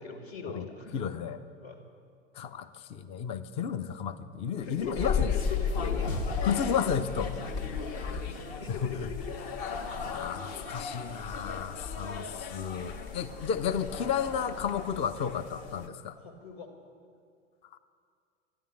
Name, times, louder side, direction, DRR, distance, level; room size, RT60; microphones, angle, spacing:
voice 1, 0.0-1.0 1.6-1.8 4.6-6.4 6.7-7.0 7.6-9.5 13.3-13.4 16.2-16.7, left 4 dB, 60° left, 4 dB, 2.0 m, -41 dB
voice 2, 0.9-1.4 2.4-5.3 6.4-7.3 8.7-9.1 9.9-16.1, left 7 dB, 15° left, 11 dB, 0.5 m, -32 dB
sound 1, 4.7-15.9, left 6 dB, 40° left, 1.3 m, -35 dB
sound 2, 6.1-10.7, left 2 dB, 80° left, 1.3 m, -42 dB
13.0 x 10.5 x 10.0 m, 2.3 s
figure-of-eight pair, 95°, 37 cm